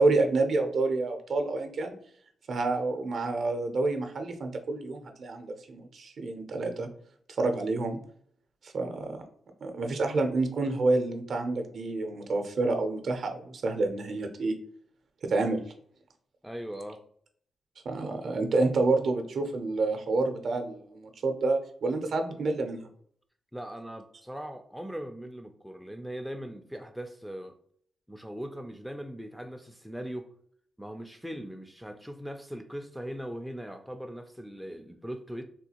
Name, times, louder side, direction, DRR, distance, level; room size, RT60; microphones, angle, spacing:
voice 1, 0.0-1.9 2.5-6.9 7.4-8.0 8.6-9.1 9.6-14.5 15.2-15.6 17.9-22.9, right 3 dB, 55° right, 0.5 m, -28 dB
voice 2, 16.4-17.0 23.5-27.5 28.1-30.3 30.8-35.4, equal, ahead, 0.3 m, -40 dB
3.5 x 2.3 x 2.8 m
cardioid pair, 110°, 0 cm